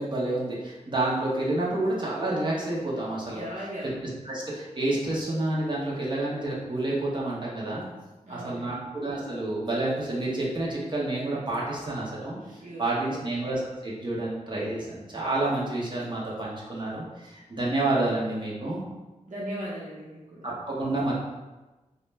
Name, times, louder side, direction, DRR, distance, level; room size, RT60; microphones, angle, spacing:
voice 1, 0.0-3.4 4.2-7.9 8.3-12.4 12.8-18.8 20.4-21.1, right 2 dB, 35° right, -6 dB, 0.6 m, -29 dB
voice 2, 3.3-4.0 8.2-8.8 12.4-13.2 19.3-20.5, equal, 70° right, -7 dB, 0.8 m, -38 dB
2.3 x 2.1 x 3.1 m, 1.1 s
wide cardioid pair, 75°, 13 cm